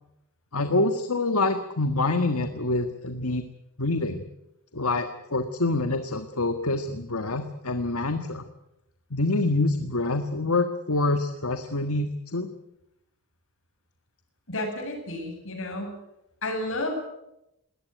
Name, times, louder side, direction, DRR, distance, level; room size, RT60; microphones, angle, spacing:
voice 1, 0.5-3.4 3.8-4.2 4.7-8.4 9.1-12.5, left 2 dB, 80° left, 8 dB, 1.6 m, -26 dB
voice 2, 14.5-16.0 16.4-17.0, left 1 dB, 65° left, 4 dB, 7.8 m, -31 dB
21.0 x 19.0 x 9.2 m, 0.87 s
head